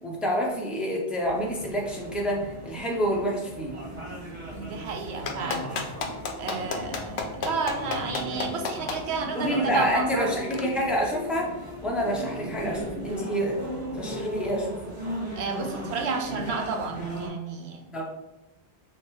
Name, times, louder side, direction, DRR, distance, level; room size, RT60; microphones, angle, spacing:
voice 1, 0.0-3.8 9.3-13.6 13.9-14.9 17.9-18.1, equal, ahead, -2 dB, 0.7 m, -28 dB
sound 1, 1.2-17.3, equal, 55° right, 1.9 m, -36 dB
voice 2, 4.5-5.8 6.4-10.3 15.4-17.8, right 5 dB, 85° right, 4 dB, 1.0 m, -32 dB
Clapping, 5.3-9.0 10.5-10.6, left 5 dB, 80° left, 0.9 m, -30 dB
6.3 x 2.4 x 3.1 m, 0.97 s
omnidirectional pair, 1.1 m